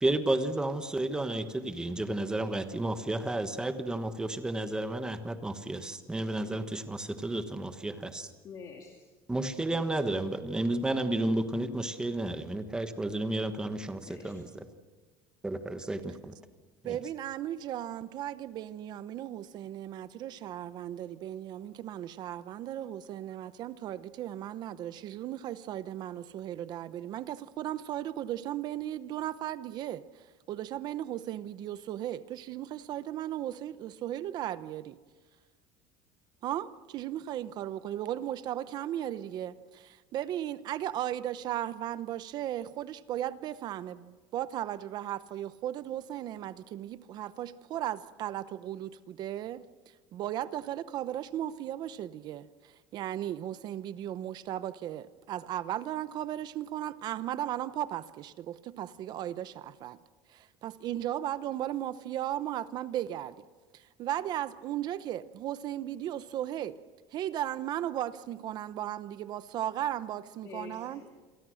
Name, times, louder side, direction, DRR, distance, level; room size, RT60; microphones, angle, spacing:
voice 1, 0.0-8.3 9.3-14.6 15.4-16.3 16.8-17.0, right 2 dB, 5° right, 8 dB, 1.3 m, -32 dB
voice 2, 8.4-9.1 13.9-14.5 70.4-71.1, left 5 dB, 35° left, 2 dB, 2.5 m, -47 dB
voice 3, 16.8-30.0 30.5-35.0 36.4-49.6 50.1-60.0 60.3-63.4 63.7-66.8 67.1-71.0, right 12 dB, 40° right, 15 dB, 0.8 m, -36 dB
28.5 x 23.0 x 6.4 m, 1.3 s
cardioid pair, 175°, 11 cm